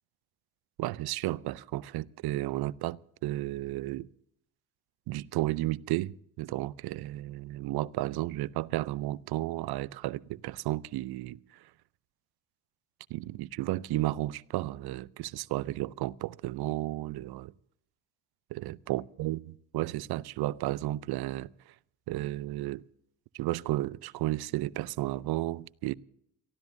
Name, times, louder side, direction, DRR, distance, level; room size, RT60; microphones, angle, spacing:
voice 1, 0.8-4.1 5.1-11.7 13.1-17.5 18.5-19.4 19.7-21.5 22.1-22.8 23.3-25.9, right 16 dB, 60° right, 0.6 m, -33 dB
29.5 x 14.5 x 2.7 m
hypercardioid pair, 45°, 43 cm